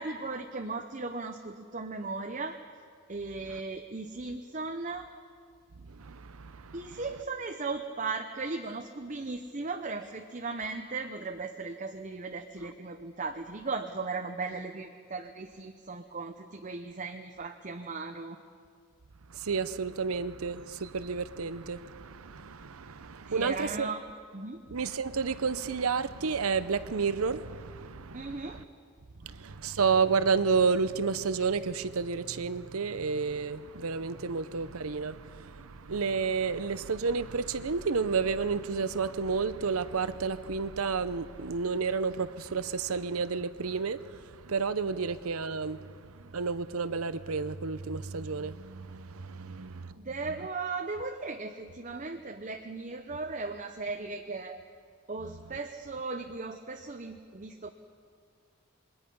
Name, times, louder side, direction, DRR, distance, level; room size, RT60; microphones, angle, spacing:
voice 1, 0.0-2.6 3.1-5.1 6.7-18.4 23.3-24.0 24.3-24.6 28.1-28.6 50.0-54.6 55.1-57.7, right 3 dB, 35° right, 0.8 m, -37 dB
voice 2, 5.8-7.0 19.3-23.9 24.7-28.6 29.2-50.1 55.2-55.4, right 5 dB, 85° right, 0.7 m, -31 dB
26.5 x 21.5 x 5.4 m
head